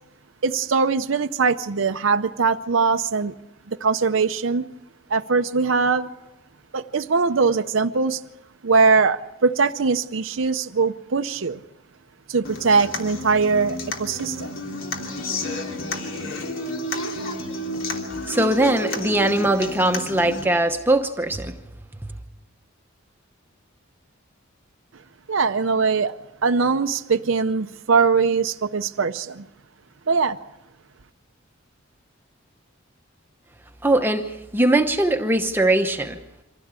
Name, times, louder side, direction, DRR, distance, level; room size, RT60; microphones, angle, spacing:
voice 1, 0.4-3.3 3.7-4.6 5.1-6.1 6.7-8.2 8.6-11.6 12.3-14.5 25.3-26.1 26.4-29.4 30.1-30.4, right 4 dB, 65° right, 8 dB, 0.7 m, -21 dB
Human voice / Acoustic guitar, 12.4-20.4, left 1 dB, 70° left, 3.2 m, -31 dB
voice 2, 18.3-21.5 33.8-36.2, right 1 dB, 10° right, 5 dB, 0.9 m, -21 dB
25.0 x 16.0 x 8.2 m, 0.99 s
head